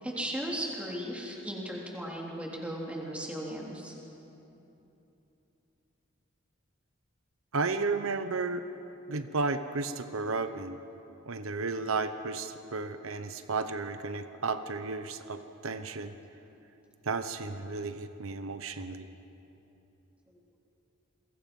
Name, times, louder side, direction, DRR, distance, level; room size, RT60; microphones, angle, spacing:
voice 1, 0.0-3.9 20.3-20.4, equal, 5° right, -3 dB, 3.3 m, -36 dB
voice 2, 7.5-8.7 9.1-10.8 11.3-16.1 17.0-19.1, right 3 dB, 90° right, 10 dB, 0.9 m, -33 dB
29.5 x 22.5 x 5.4 m, 3.0 s
head